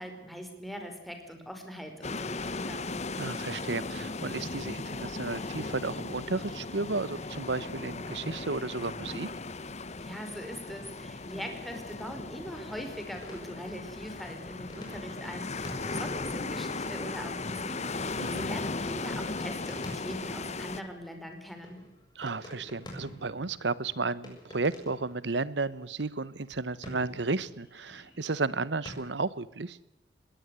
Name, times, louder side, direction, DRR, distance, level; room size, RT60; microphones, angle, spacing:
voice 1, 0.0-2.9 10.0-21.8, equal, ahead, 4 dB, 4.8 m, -42 dB
sound 1, 2.0-20.8, left 3 dB, 40° left, 1.1 m, -37 dB
voice 2, 3.2-9.3 18.2-18.5 22.1-29.8, right 3 dB, 90° right, 18 dB, 1.1 m, -33 dB
sound 2, 13.0-28.9, equal, 25° left, 7.1 m, -49 dB
20.5 x 17.5 x 8.2 m, 0.91 s
head